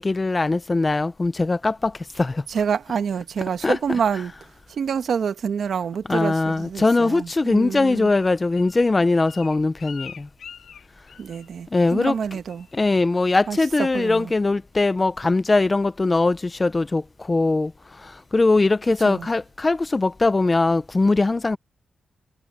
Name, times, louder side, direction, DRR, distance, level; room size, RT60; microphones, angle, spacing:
voice 1, 0.0-1.9 2.2-2.4 3.6-3.8 6.1-10.2 11.7-12.1 12.8-17.0 17.3-17.7 18.3-21.6, left 3 dB, 25° left, 0.6 m, -20 dB
voice 2, 2.5-4.3 4.7-8.1 11.2-12.7 13.5-14.3 19.0-19.3, right 7 dB, 70° right, 1.5 m, -27 dB
Bird, 7.5-11.6 11.8-12.2 12.5-12.8 13.2-13.6 14.0-14.1, left 8 dB, 80° left, 2.0 m, -45 dB
wide cardioid pair, 110°, 0 cm